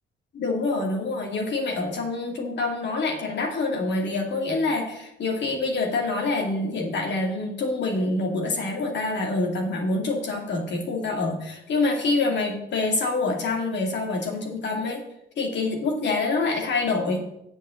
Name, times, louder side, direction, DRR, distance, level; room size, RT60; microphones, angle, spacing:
voice 1, 0.3-15.0 15.4-17.2, left 3 dB, 60° left, 1 dB, 2.5 m, -26 dB
7.7 x 7.1 x 7.1 m, 0.83 s
cardioid pair, 90°, 20 cm